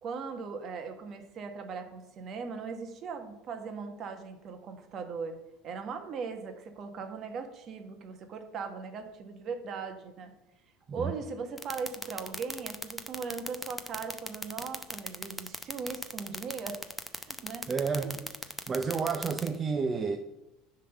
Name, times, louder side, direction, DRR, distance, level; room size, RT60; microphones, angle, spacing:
voice 1, 0.0-5.4 5.6-10.3 10.9-16.8 17.1-17.7 18.0-18.1, right 5 dB, 45° right, 1.4 m, -39 dB
sound 1, 11.6-19.5, left 1 dB, 5° left, 0.7 m, -36 dB
voice 2, 17.7-18.2 18.7-20.2, right 5 dB, 30° right, 0.7 m, -30 dB
10.0 x 3.8 x 7.0 m
supercardioid pair, 105°, 0 cm